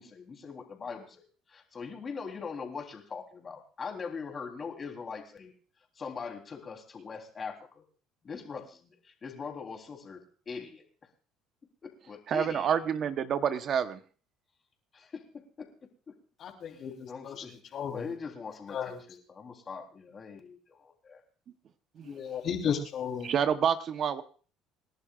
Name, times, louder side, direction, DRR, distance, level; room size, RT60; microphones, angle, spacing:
voice 1, 0.0-5.5 5.9-7.8 8.2-10.8 11.8-12.8 14.9-16.1 16.7-16.8 17.1-21.2, left 5 dB, 35° left, 2 dB, 3.4 m, -42 dB
voice 2, 12.3-14.0 22.0-22.1 23.2-24.2, right 8 dB, 50° right, 11 dB, 0.9 m, -28 dB
voice 3, 16.4-17.4 17.7-18.1 18.7-19.0 22.0-23.3, left 7 dB, 55° left, 2 dB, 3.5 m, -34 dB
27.5 x 11.0 x 2.4 m, 0.40 s
supercardioid pair, 95°, 0 cm